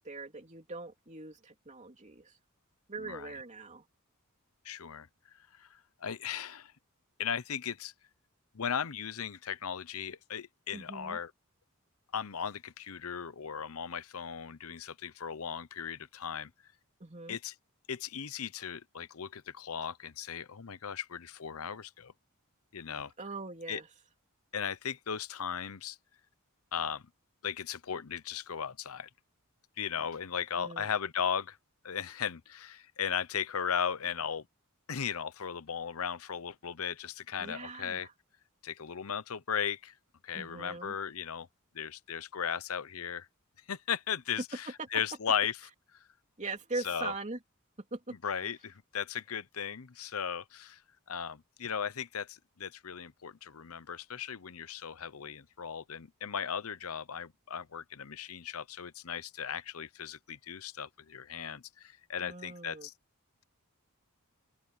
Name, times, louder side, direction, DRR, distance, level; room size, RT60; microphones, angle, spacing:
voice 1, 0.0-2.3 2.9-3.8 10.7-11.2 17.0-17.4 23.2-23.9 30.5-30.9 37.4-38.1 40.3-40.9 44.8-44.9 46.4-47.4 47.9-48.1 62.2-62.9, right 3 dB, 35° right, 3.1 m, -41 dB
voice 2, 3.0-3.3 4.6-5.1 5.3-6.7 7.2-7.9 8.5-11.3 12.1-16.5 17.3-17.5 17.9-22.1 22.7-23.1 23.7-23.8 24.5-26.0 26.7-27.0 27.4-29.1 29.8-31.6 31.8-34.4 34.9-38.1 38.6-39.9 40.2-41.5 41.7-43.3 43.7-45.6 45.9-46.0 46.8-47.1 48.2-50.8 51.1-62.9, left 7 dB, 75° left, 0.8 m, -37 dB
open air
head